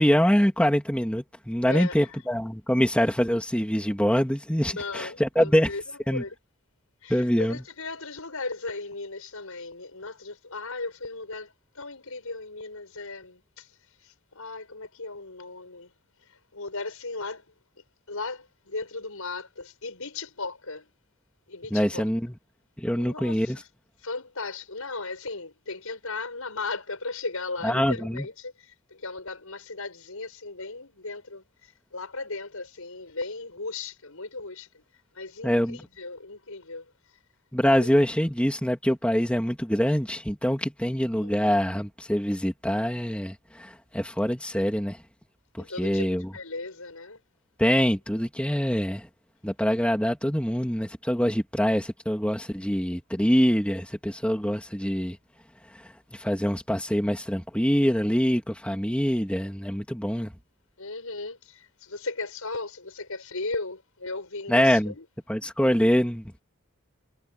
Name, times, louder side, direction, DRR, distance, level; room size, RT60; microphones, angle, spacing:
voice 1, 0.0-5.7 6.1-6.2 7.1-7.6 21.7-22.3 22.8-23.6 27.6-28.3 35.4-35.8 37.5-45.0 45.5-46.3 47.6-49.1 49.4-55.2 56.1-60.3 64.5-64.9 65.3-66.4, equal, 5° left, 2.8 m, -24 dB
voice 2, 1.6-2.2 4.7-6.4 7.0-13.7 14.0-15.9 16.3-17.4 18.1-20.9 21.5-22.1 22.9-23.6 24.0-34.8 35.1-36.9 37.8-37.9 41.2-41.3 45.6-47.2 60.8-65.0, left 3 dB, 80° left, 5.6 m, -37 dB
head